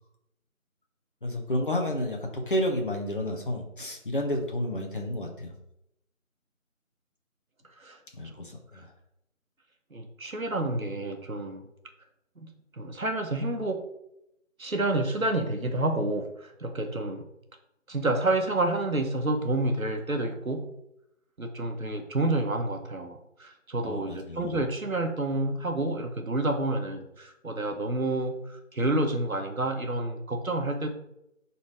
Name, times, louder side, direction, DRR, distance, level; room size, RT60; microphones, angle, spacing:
voice 1, 1.2-5.5 8.2-8.9 23.8-24.5, left 1 dB, 40° left, 2 dB, 1.2 m, -31 dB
voice 2, 9.9-11.6 12.4-12.5 12.8-13.8 14.6-17.2 17.9-20.6 21.4-30.9, right 2 dB, 85° right, 4 dB, 1.4 m, -29 dB
10.5 x 4.2 x 3.2 m, 0.82 s
figure-of-eight pair, 165°, 40 cm